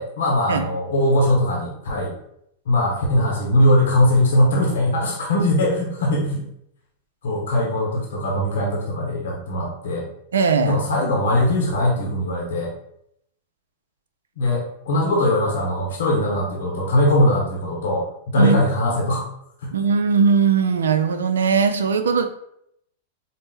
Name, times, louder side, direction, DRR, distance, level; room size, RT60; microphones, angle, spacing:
voice 1, 0.0-2.1 2.7-6.4 7.2-10.1 10.6-12.7 14.4-18.1 18.3-19.3 19.6-19.7, left 1 dB, 80° left, -2 dB, 0.9 m, -20 dB
voice 2, 10.3-10.8 18.4-18.6 19.7-22.3, right 5 dB, 90° right, 8 dB, 0.4 m, -19 dB
4.1 x 2.1 x 3.6 m, 0.74 s
hypercardioid pair, 115°, 0 cm